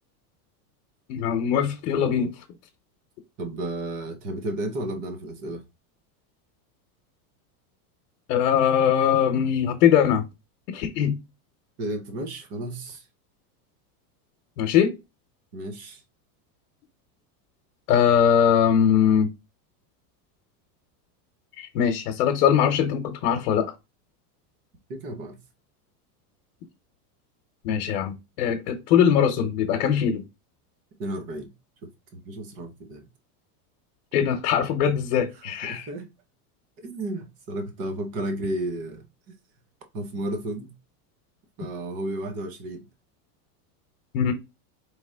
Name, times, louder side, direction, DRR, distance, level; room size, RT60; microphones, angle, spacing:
voice 1, 1.1-2.3 8.3-10.2 10.7-11.2 14.6-15.0 17.9-19.3 21.6-23.7 27.6-30.2 34.1-35.9 44.1-44.3, left 8 dB, 75° left, 1.0 m, -21 dB
voice 2, 3.4-5.6 11.8-13.1 15.5-16.0 24.9-25.4 31.0-31.5 31.8-33.0 35.6-36.1 36.8-39.1 39.9-40.7 41.6-42.8, right 1 dB, 20° right, 0.3 m, -33 dB
4.1 x 3.1 x 3.5 m
supercardioid pair, 170°, 46 cm